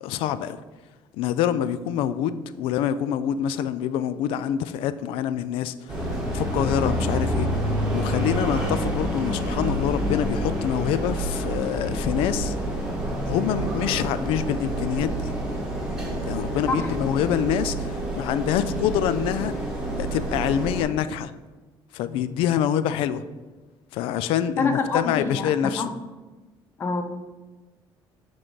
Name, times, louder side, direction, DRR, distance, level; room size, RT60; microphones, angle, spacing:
voice 1, 0.0-0.6 1.1-5.7 6.3-12.5 13.3-15.3 16.3-19.5 20.0-21.3 21.9-23.2 23.9-25.8, left 10 dB, 85° left, 0.4 m, -26 dB
sound 1, 5.9-20.8, equal, 10° right, 1.3 m, -28 dB
voice 2, 24.6-25.9 26.8-27.0, left 4 dB, 25° left, 0.6 m, -26 dB
7.5 x 3.8 x 4.7 m
cardioid pair, 175°, 9 cm